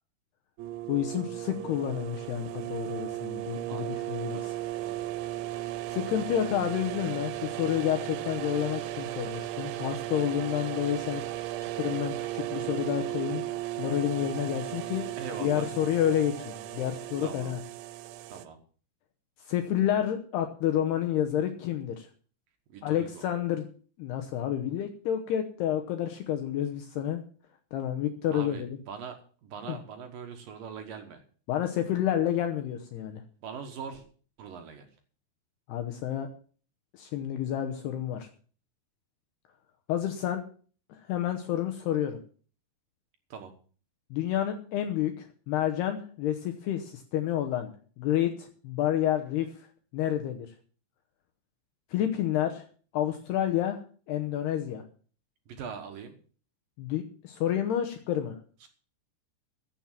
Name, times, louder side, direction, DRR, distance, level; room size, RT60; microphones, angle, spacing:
sound 1, 0.6-18.5, right 14 dB, 85° right, 3.2 m, -36 dB
voice 1, 0.9-4.5 5.9-11.2 11.6-13.4 13.8-15.0 15.4-17.6 19.5-22.1 22.8-23.7 24.0-27.2 27.7-28.8 29.7-29.8 31.5-33.2 35.7-36.3 36.9-38.3 39.9-40.4 40.9-42.2 44.1-49.7 49.9-50.5 51.9-52.7 52.9-53.8 54.1-54.8 56.8-58.4, left 11 dB, 70° left, 6 dB, 2.8 m, -29 dB
voice 2, 4.8-5.2 15.2-15.7 17.2-17.6 18.3-18.6 22.7-23.3 28.3-31.2 33.4-34.0 34.4-34.9 43.3-43.5 55.5-56.2 58.6-58.7, right 6 dB, 65° right, 6 dB, 2.5 m, -42 dB
15.5 x 7.5 x 7.3 m, 0.43 s
omnidirectional pair, 5.3 m